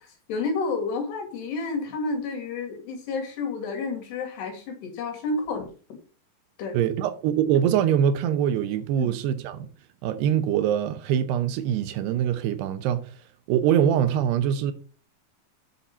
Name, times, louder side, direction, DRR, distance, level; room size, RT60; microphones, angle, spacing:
voice 1, 0.3-5.7 6.6-6.8 9.0-9.1, left 3 dB, 70° left, 4.5 m, -30 dB
voice 2, 6.7-9.7 10.0-13.1 13.5-14.7, right 9 dB, 75° right, 2.8 m, -23 dB
8.6 x 7.1 x 5.5 m
omnidirectional pair, 5.0 m